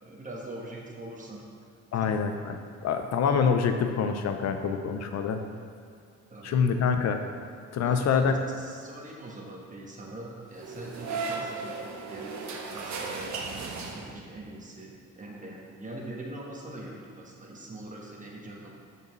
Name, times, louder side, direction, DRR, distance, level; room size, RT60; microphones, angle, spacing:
voice 1, 0.0-1.5 1.9-2.1 6.3-6.7 7.8-12.5 12.7-13.5 13.8-18.7, right 1 dB, 25° right, -3 dB, 1.3 m, -42 dB
voice 2, 1.9-5.4 6.4-7.2 7.7-8.4, left 6 dB, 60° left, 7 dB, 0.6 m, -26 dB
sound 1, 10.5-14.4, right 4 dB, 65° right, 0.8 m, -36 dB
6.9 x 5.4 x 3.1 m, 2.2 s
cardioid pair, 90°, 30 cm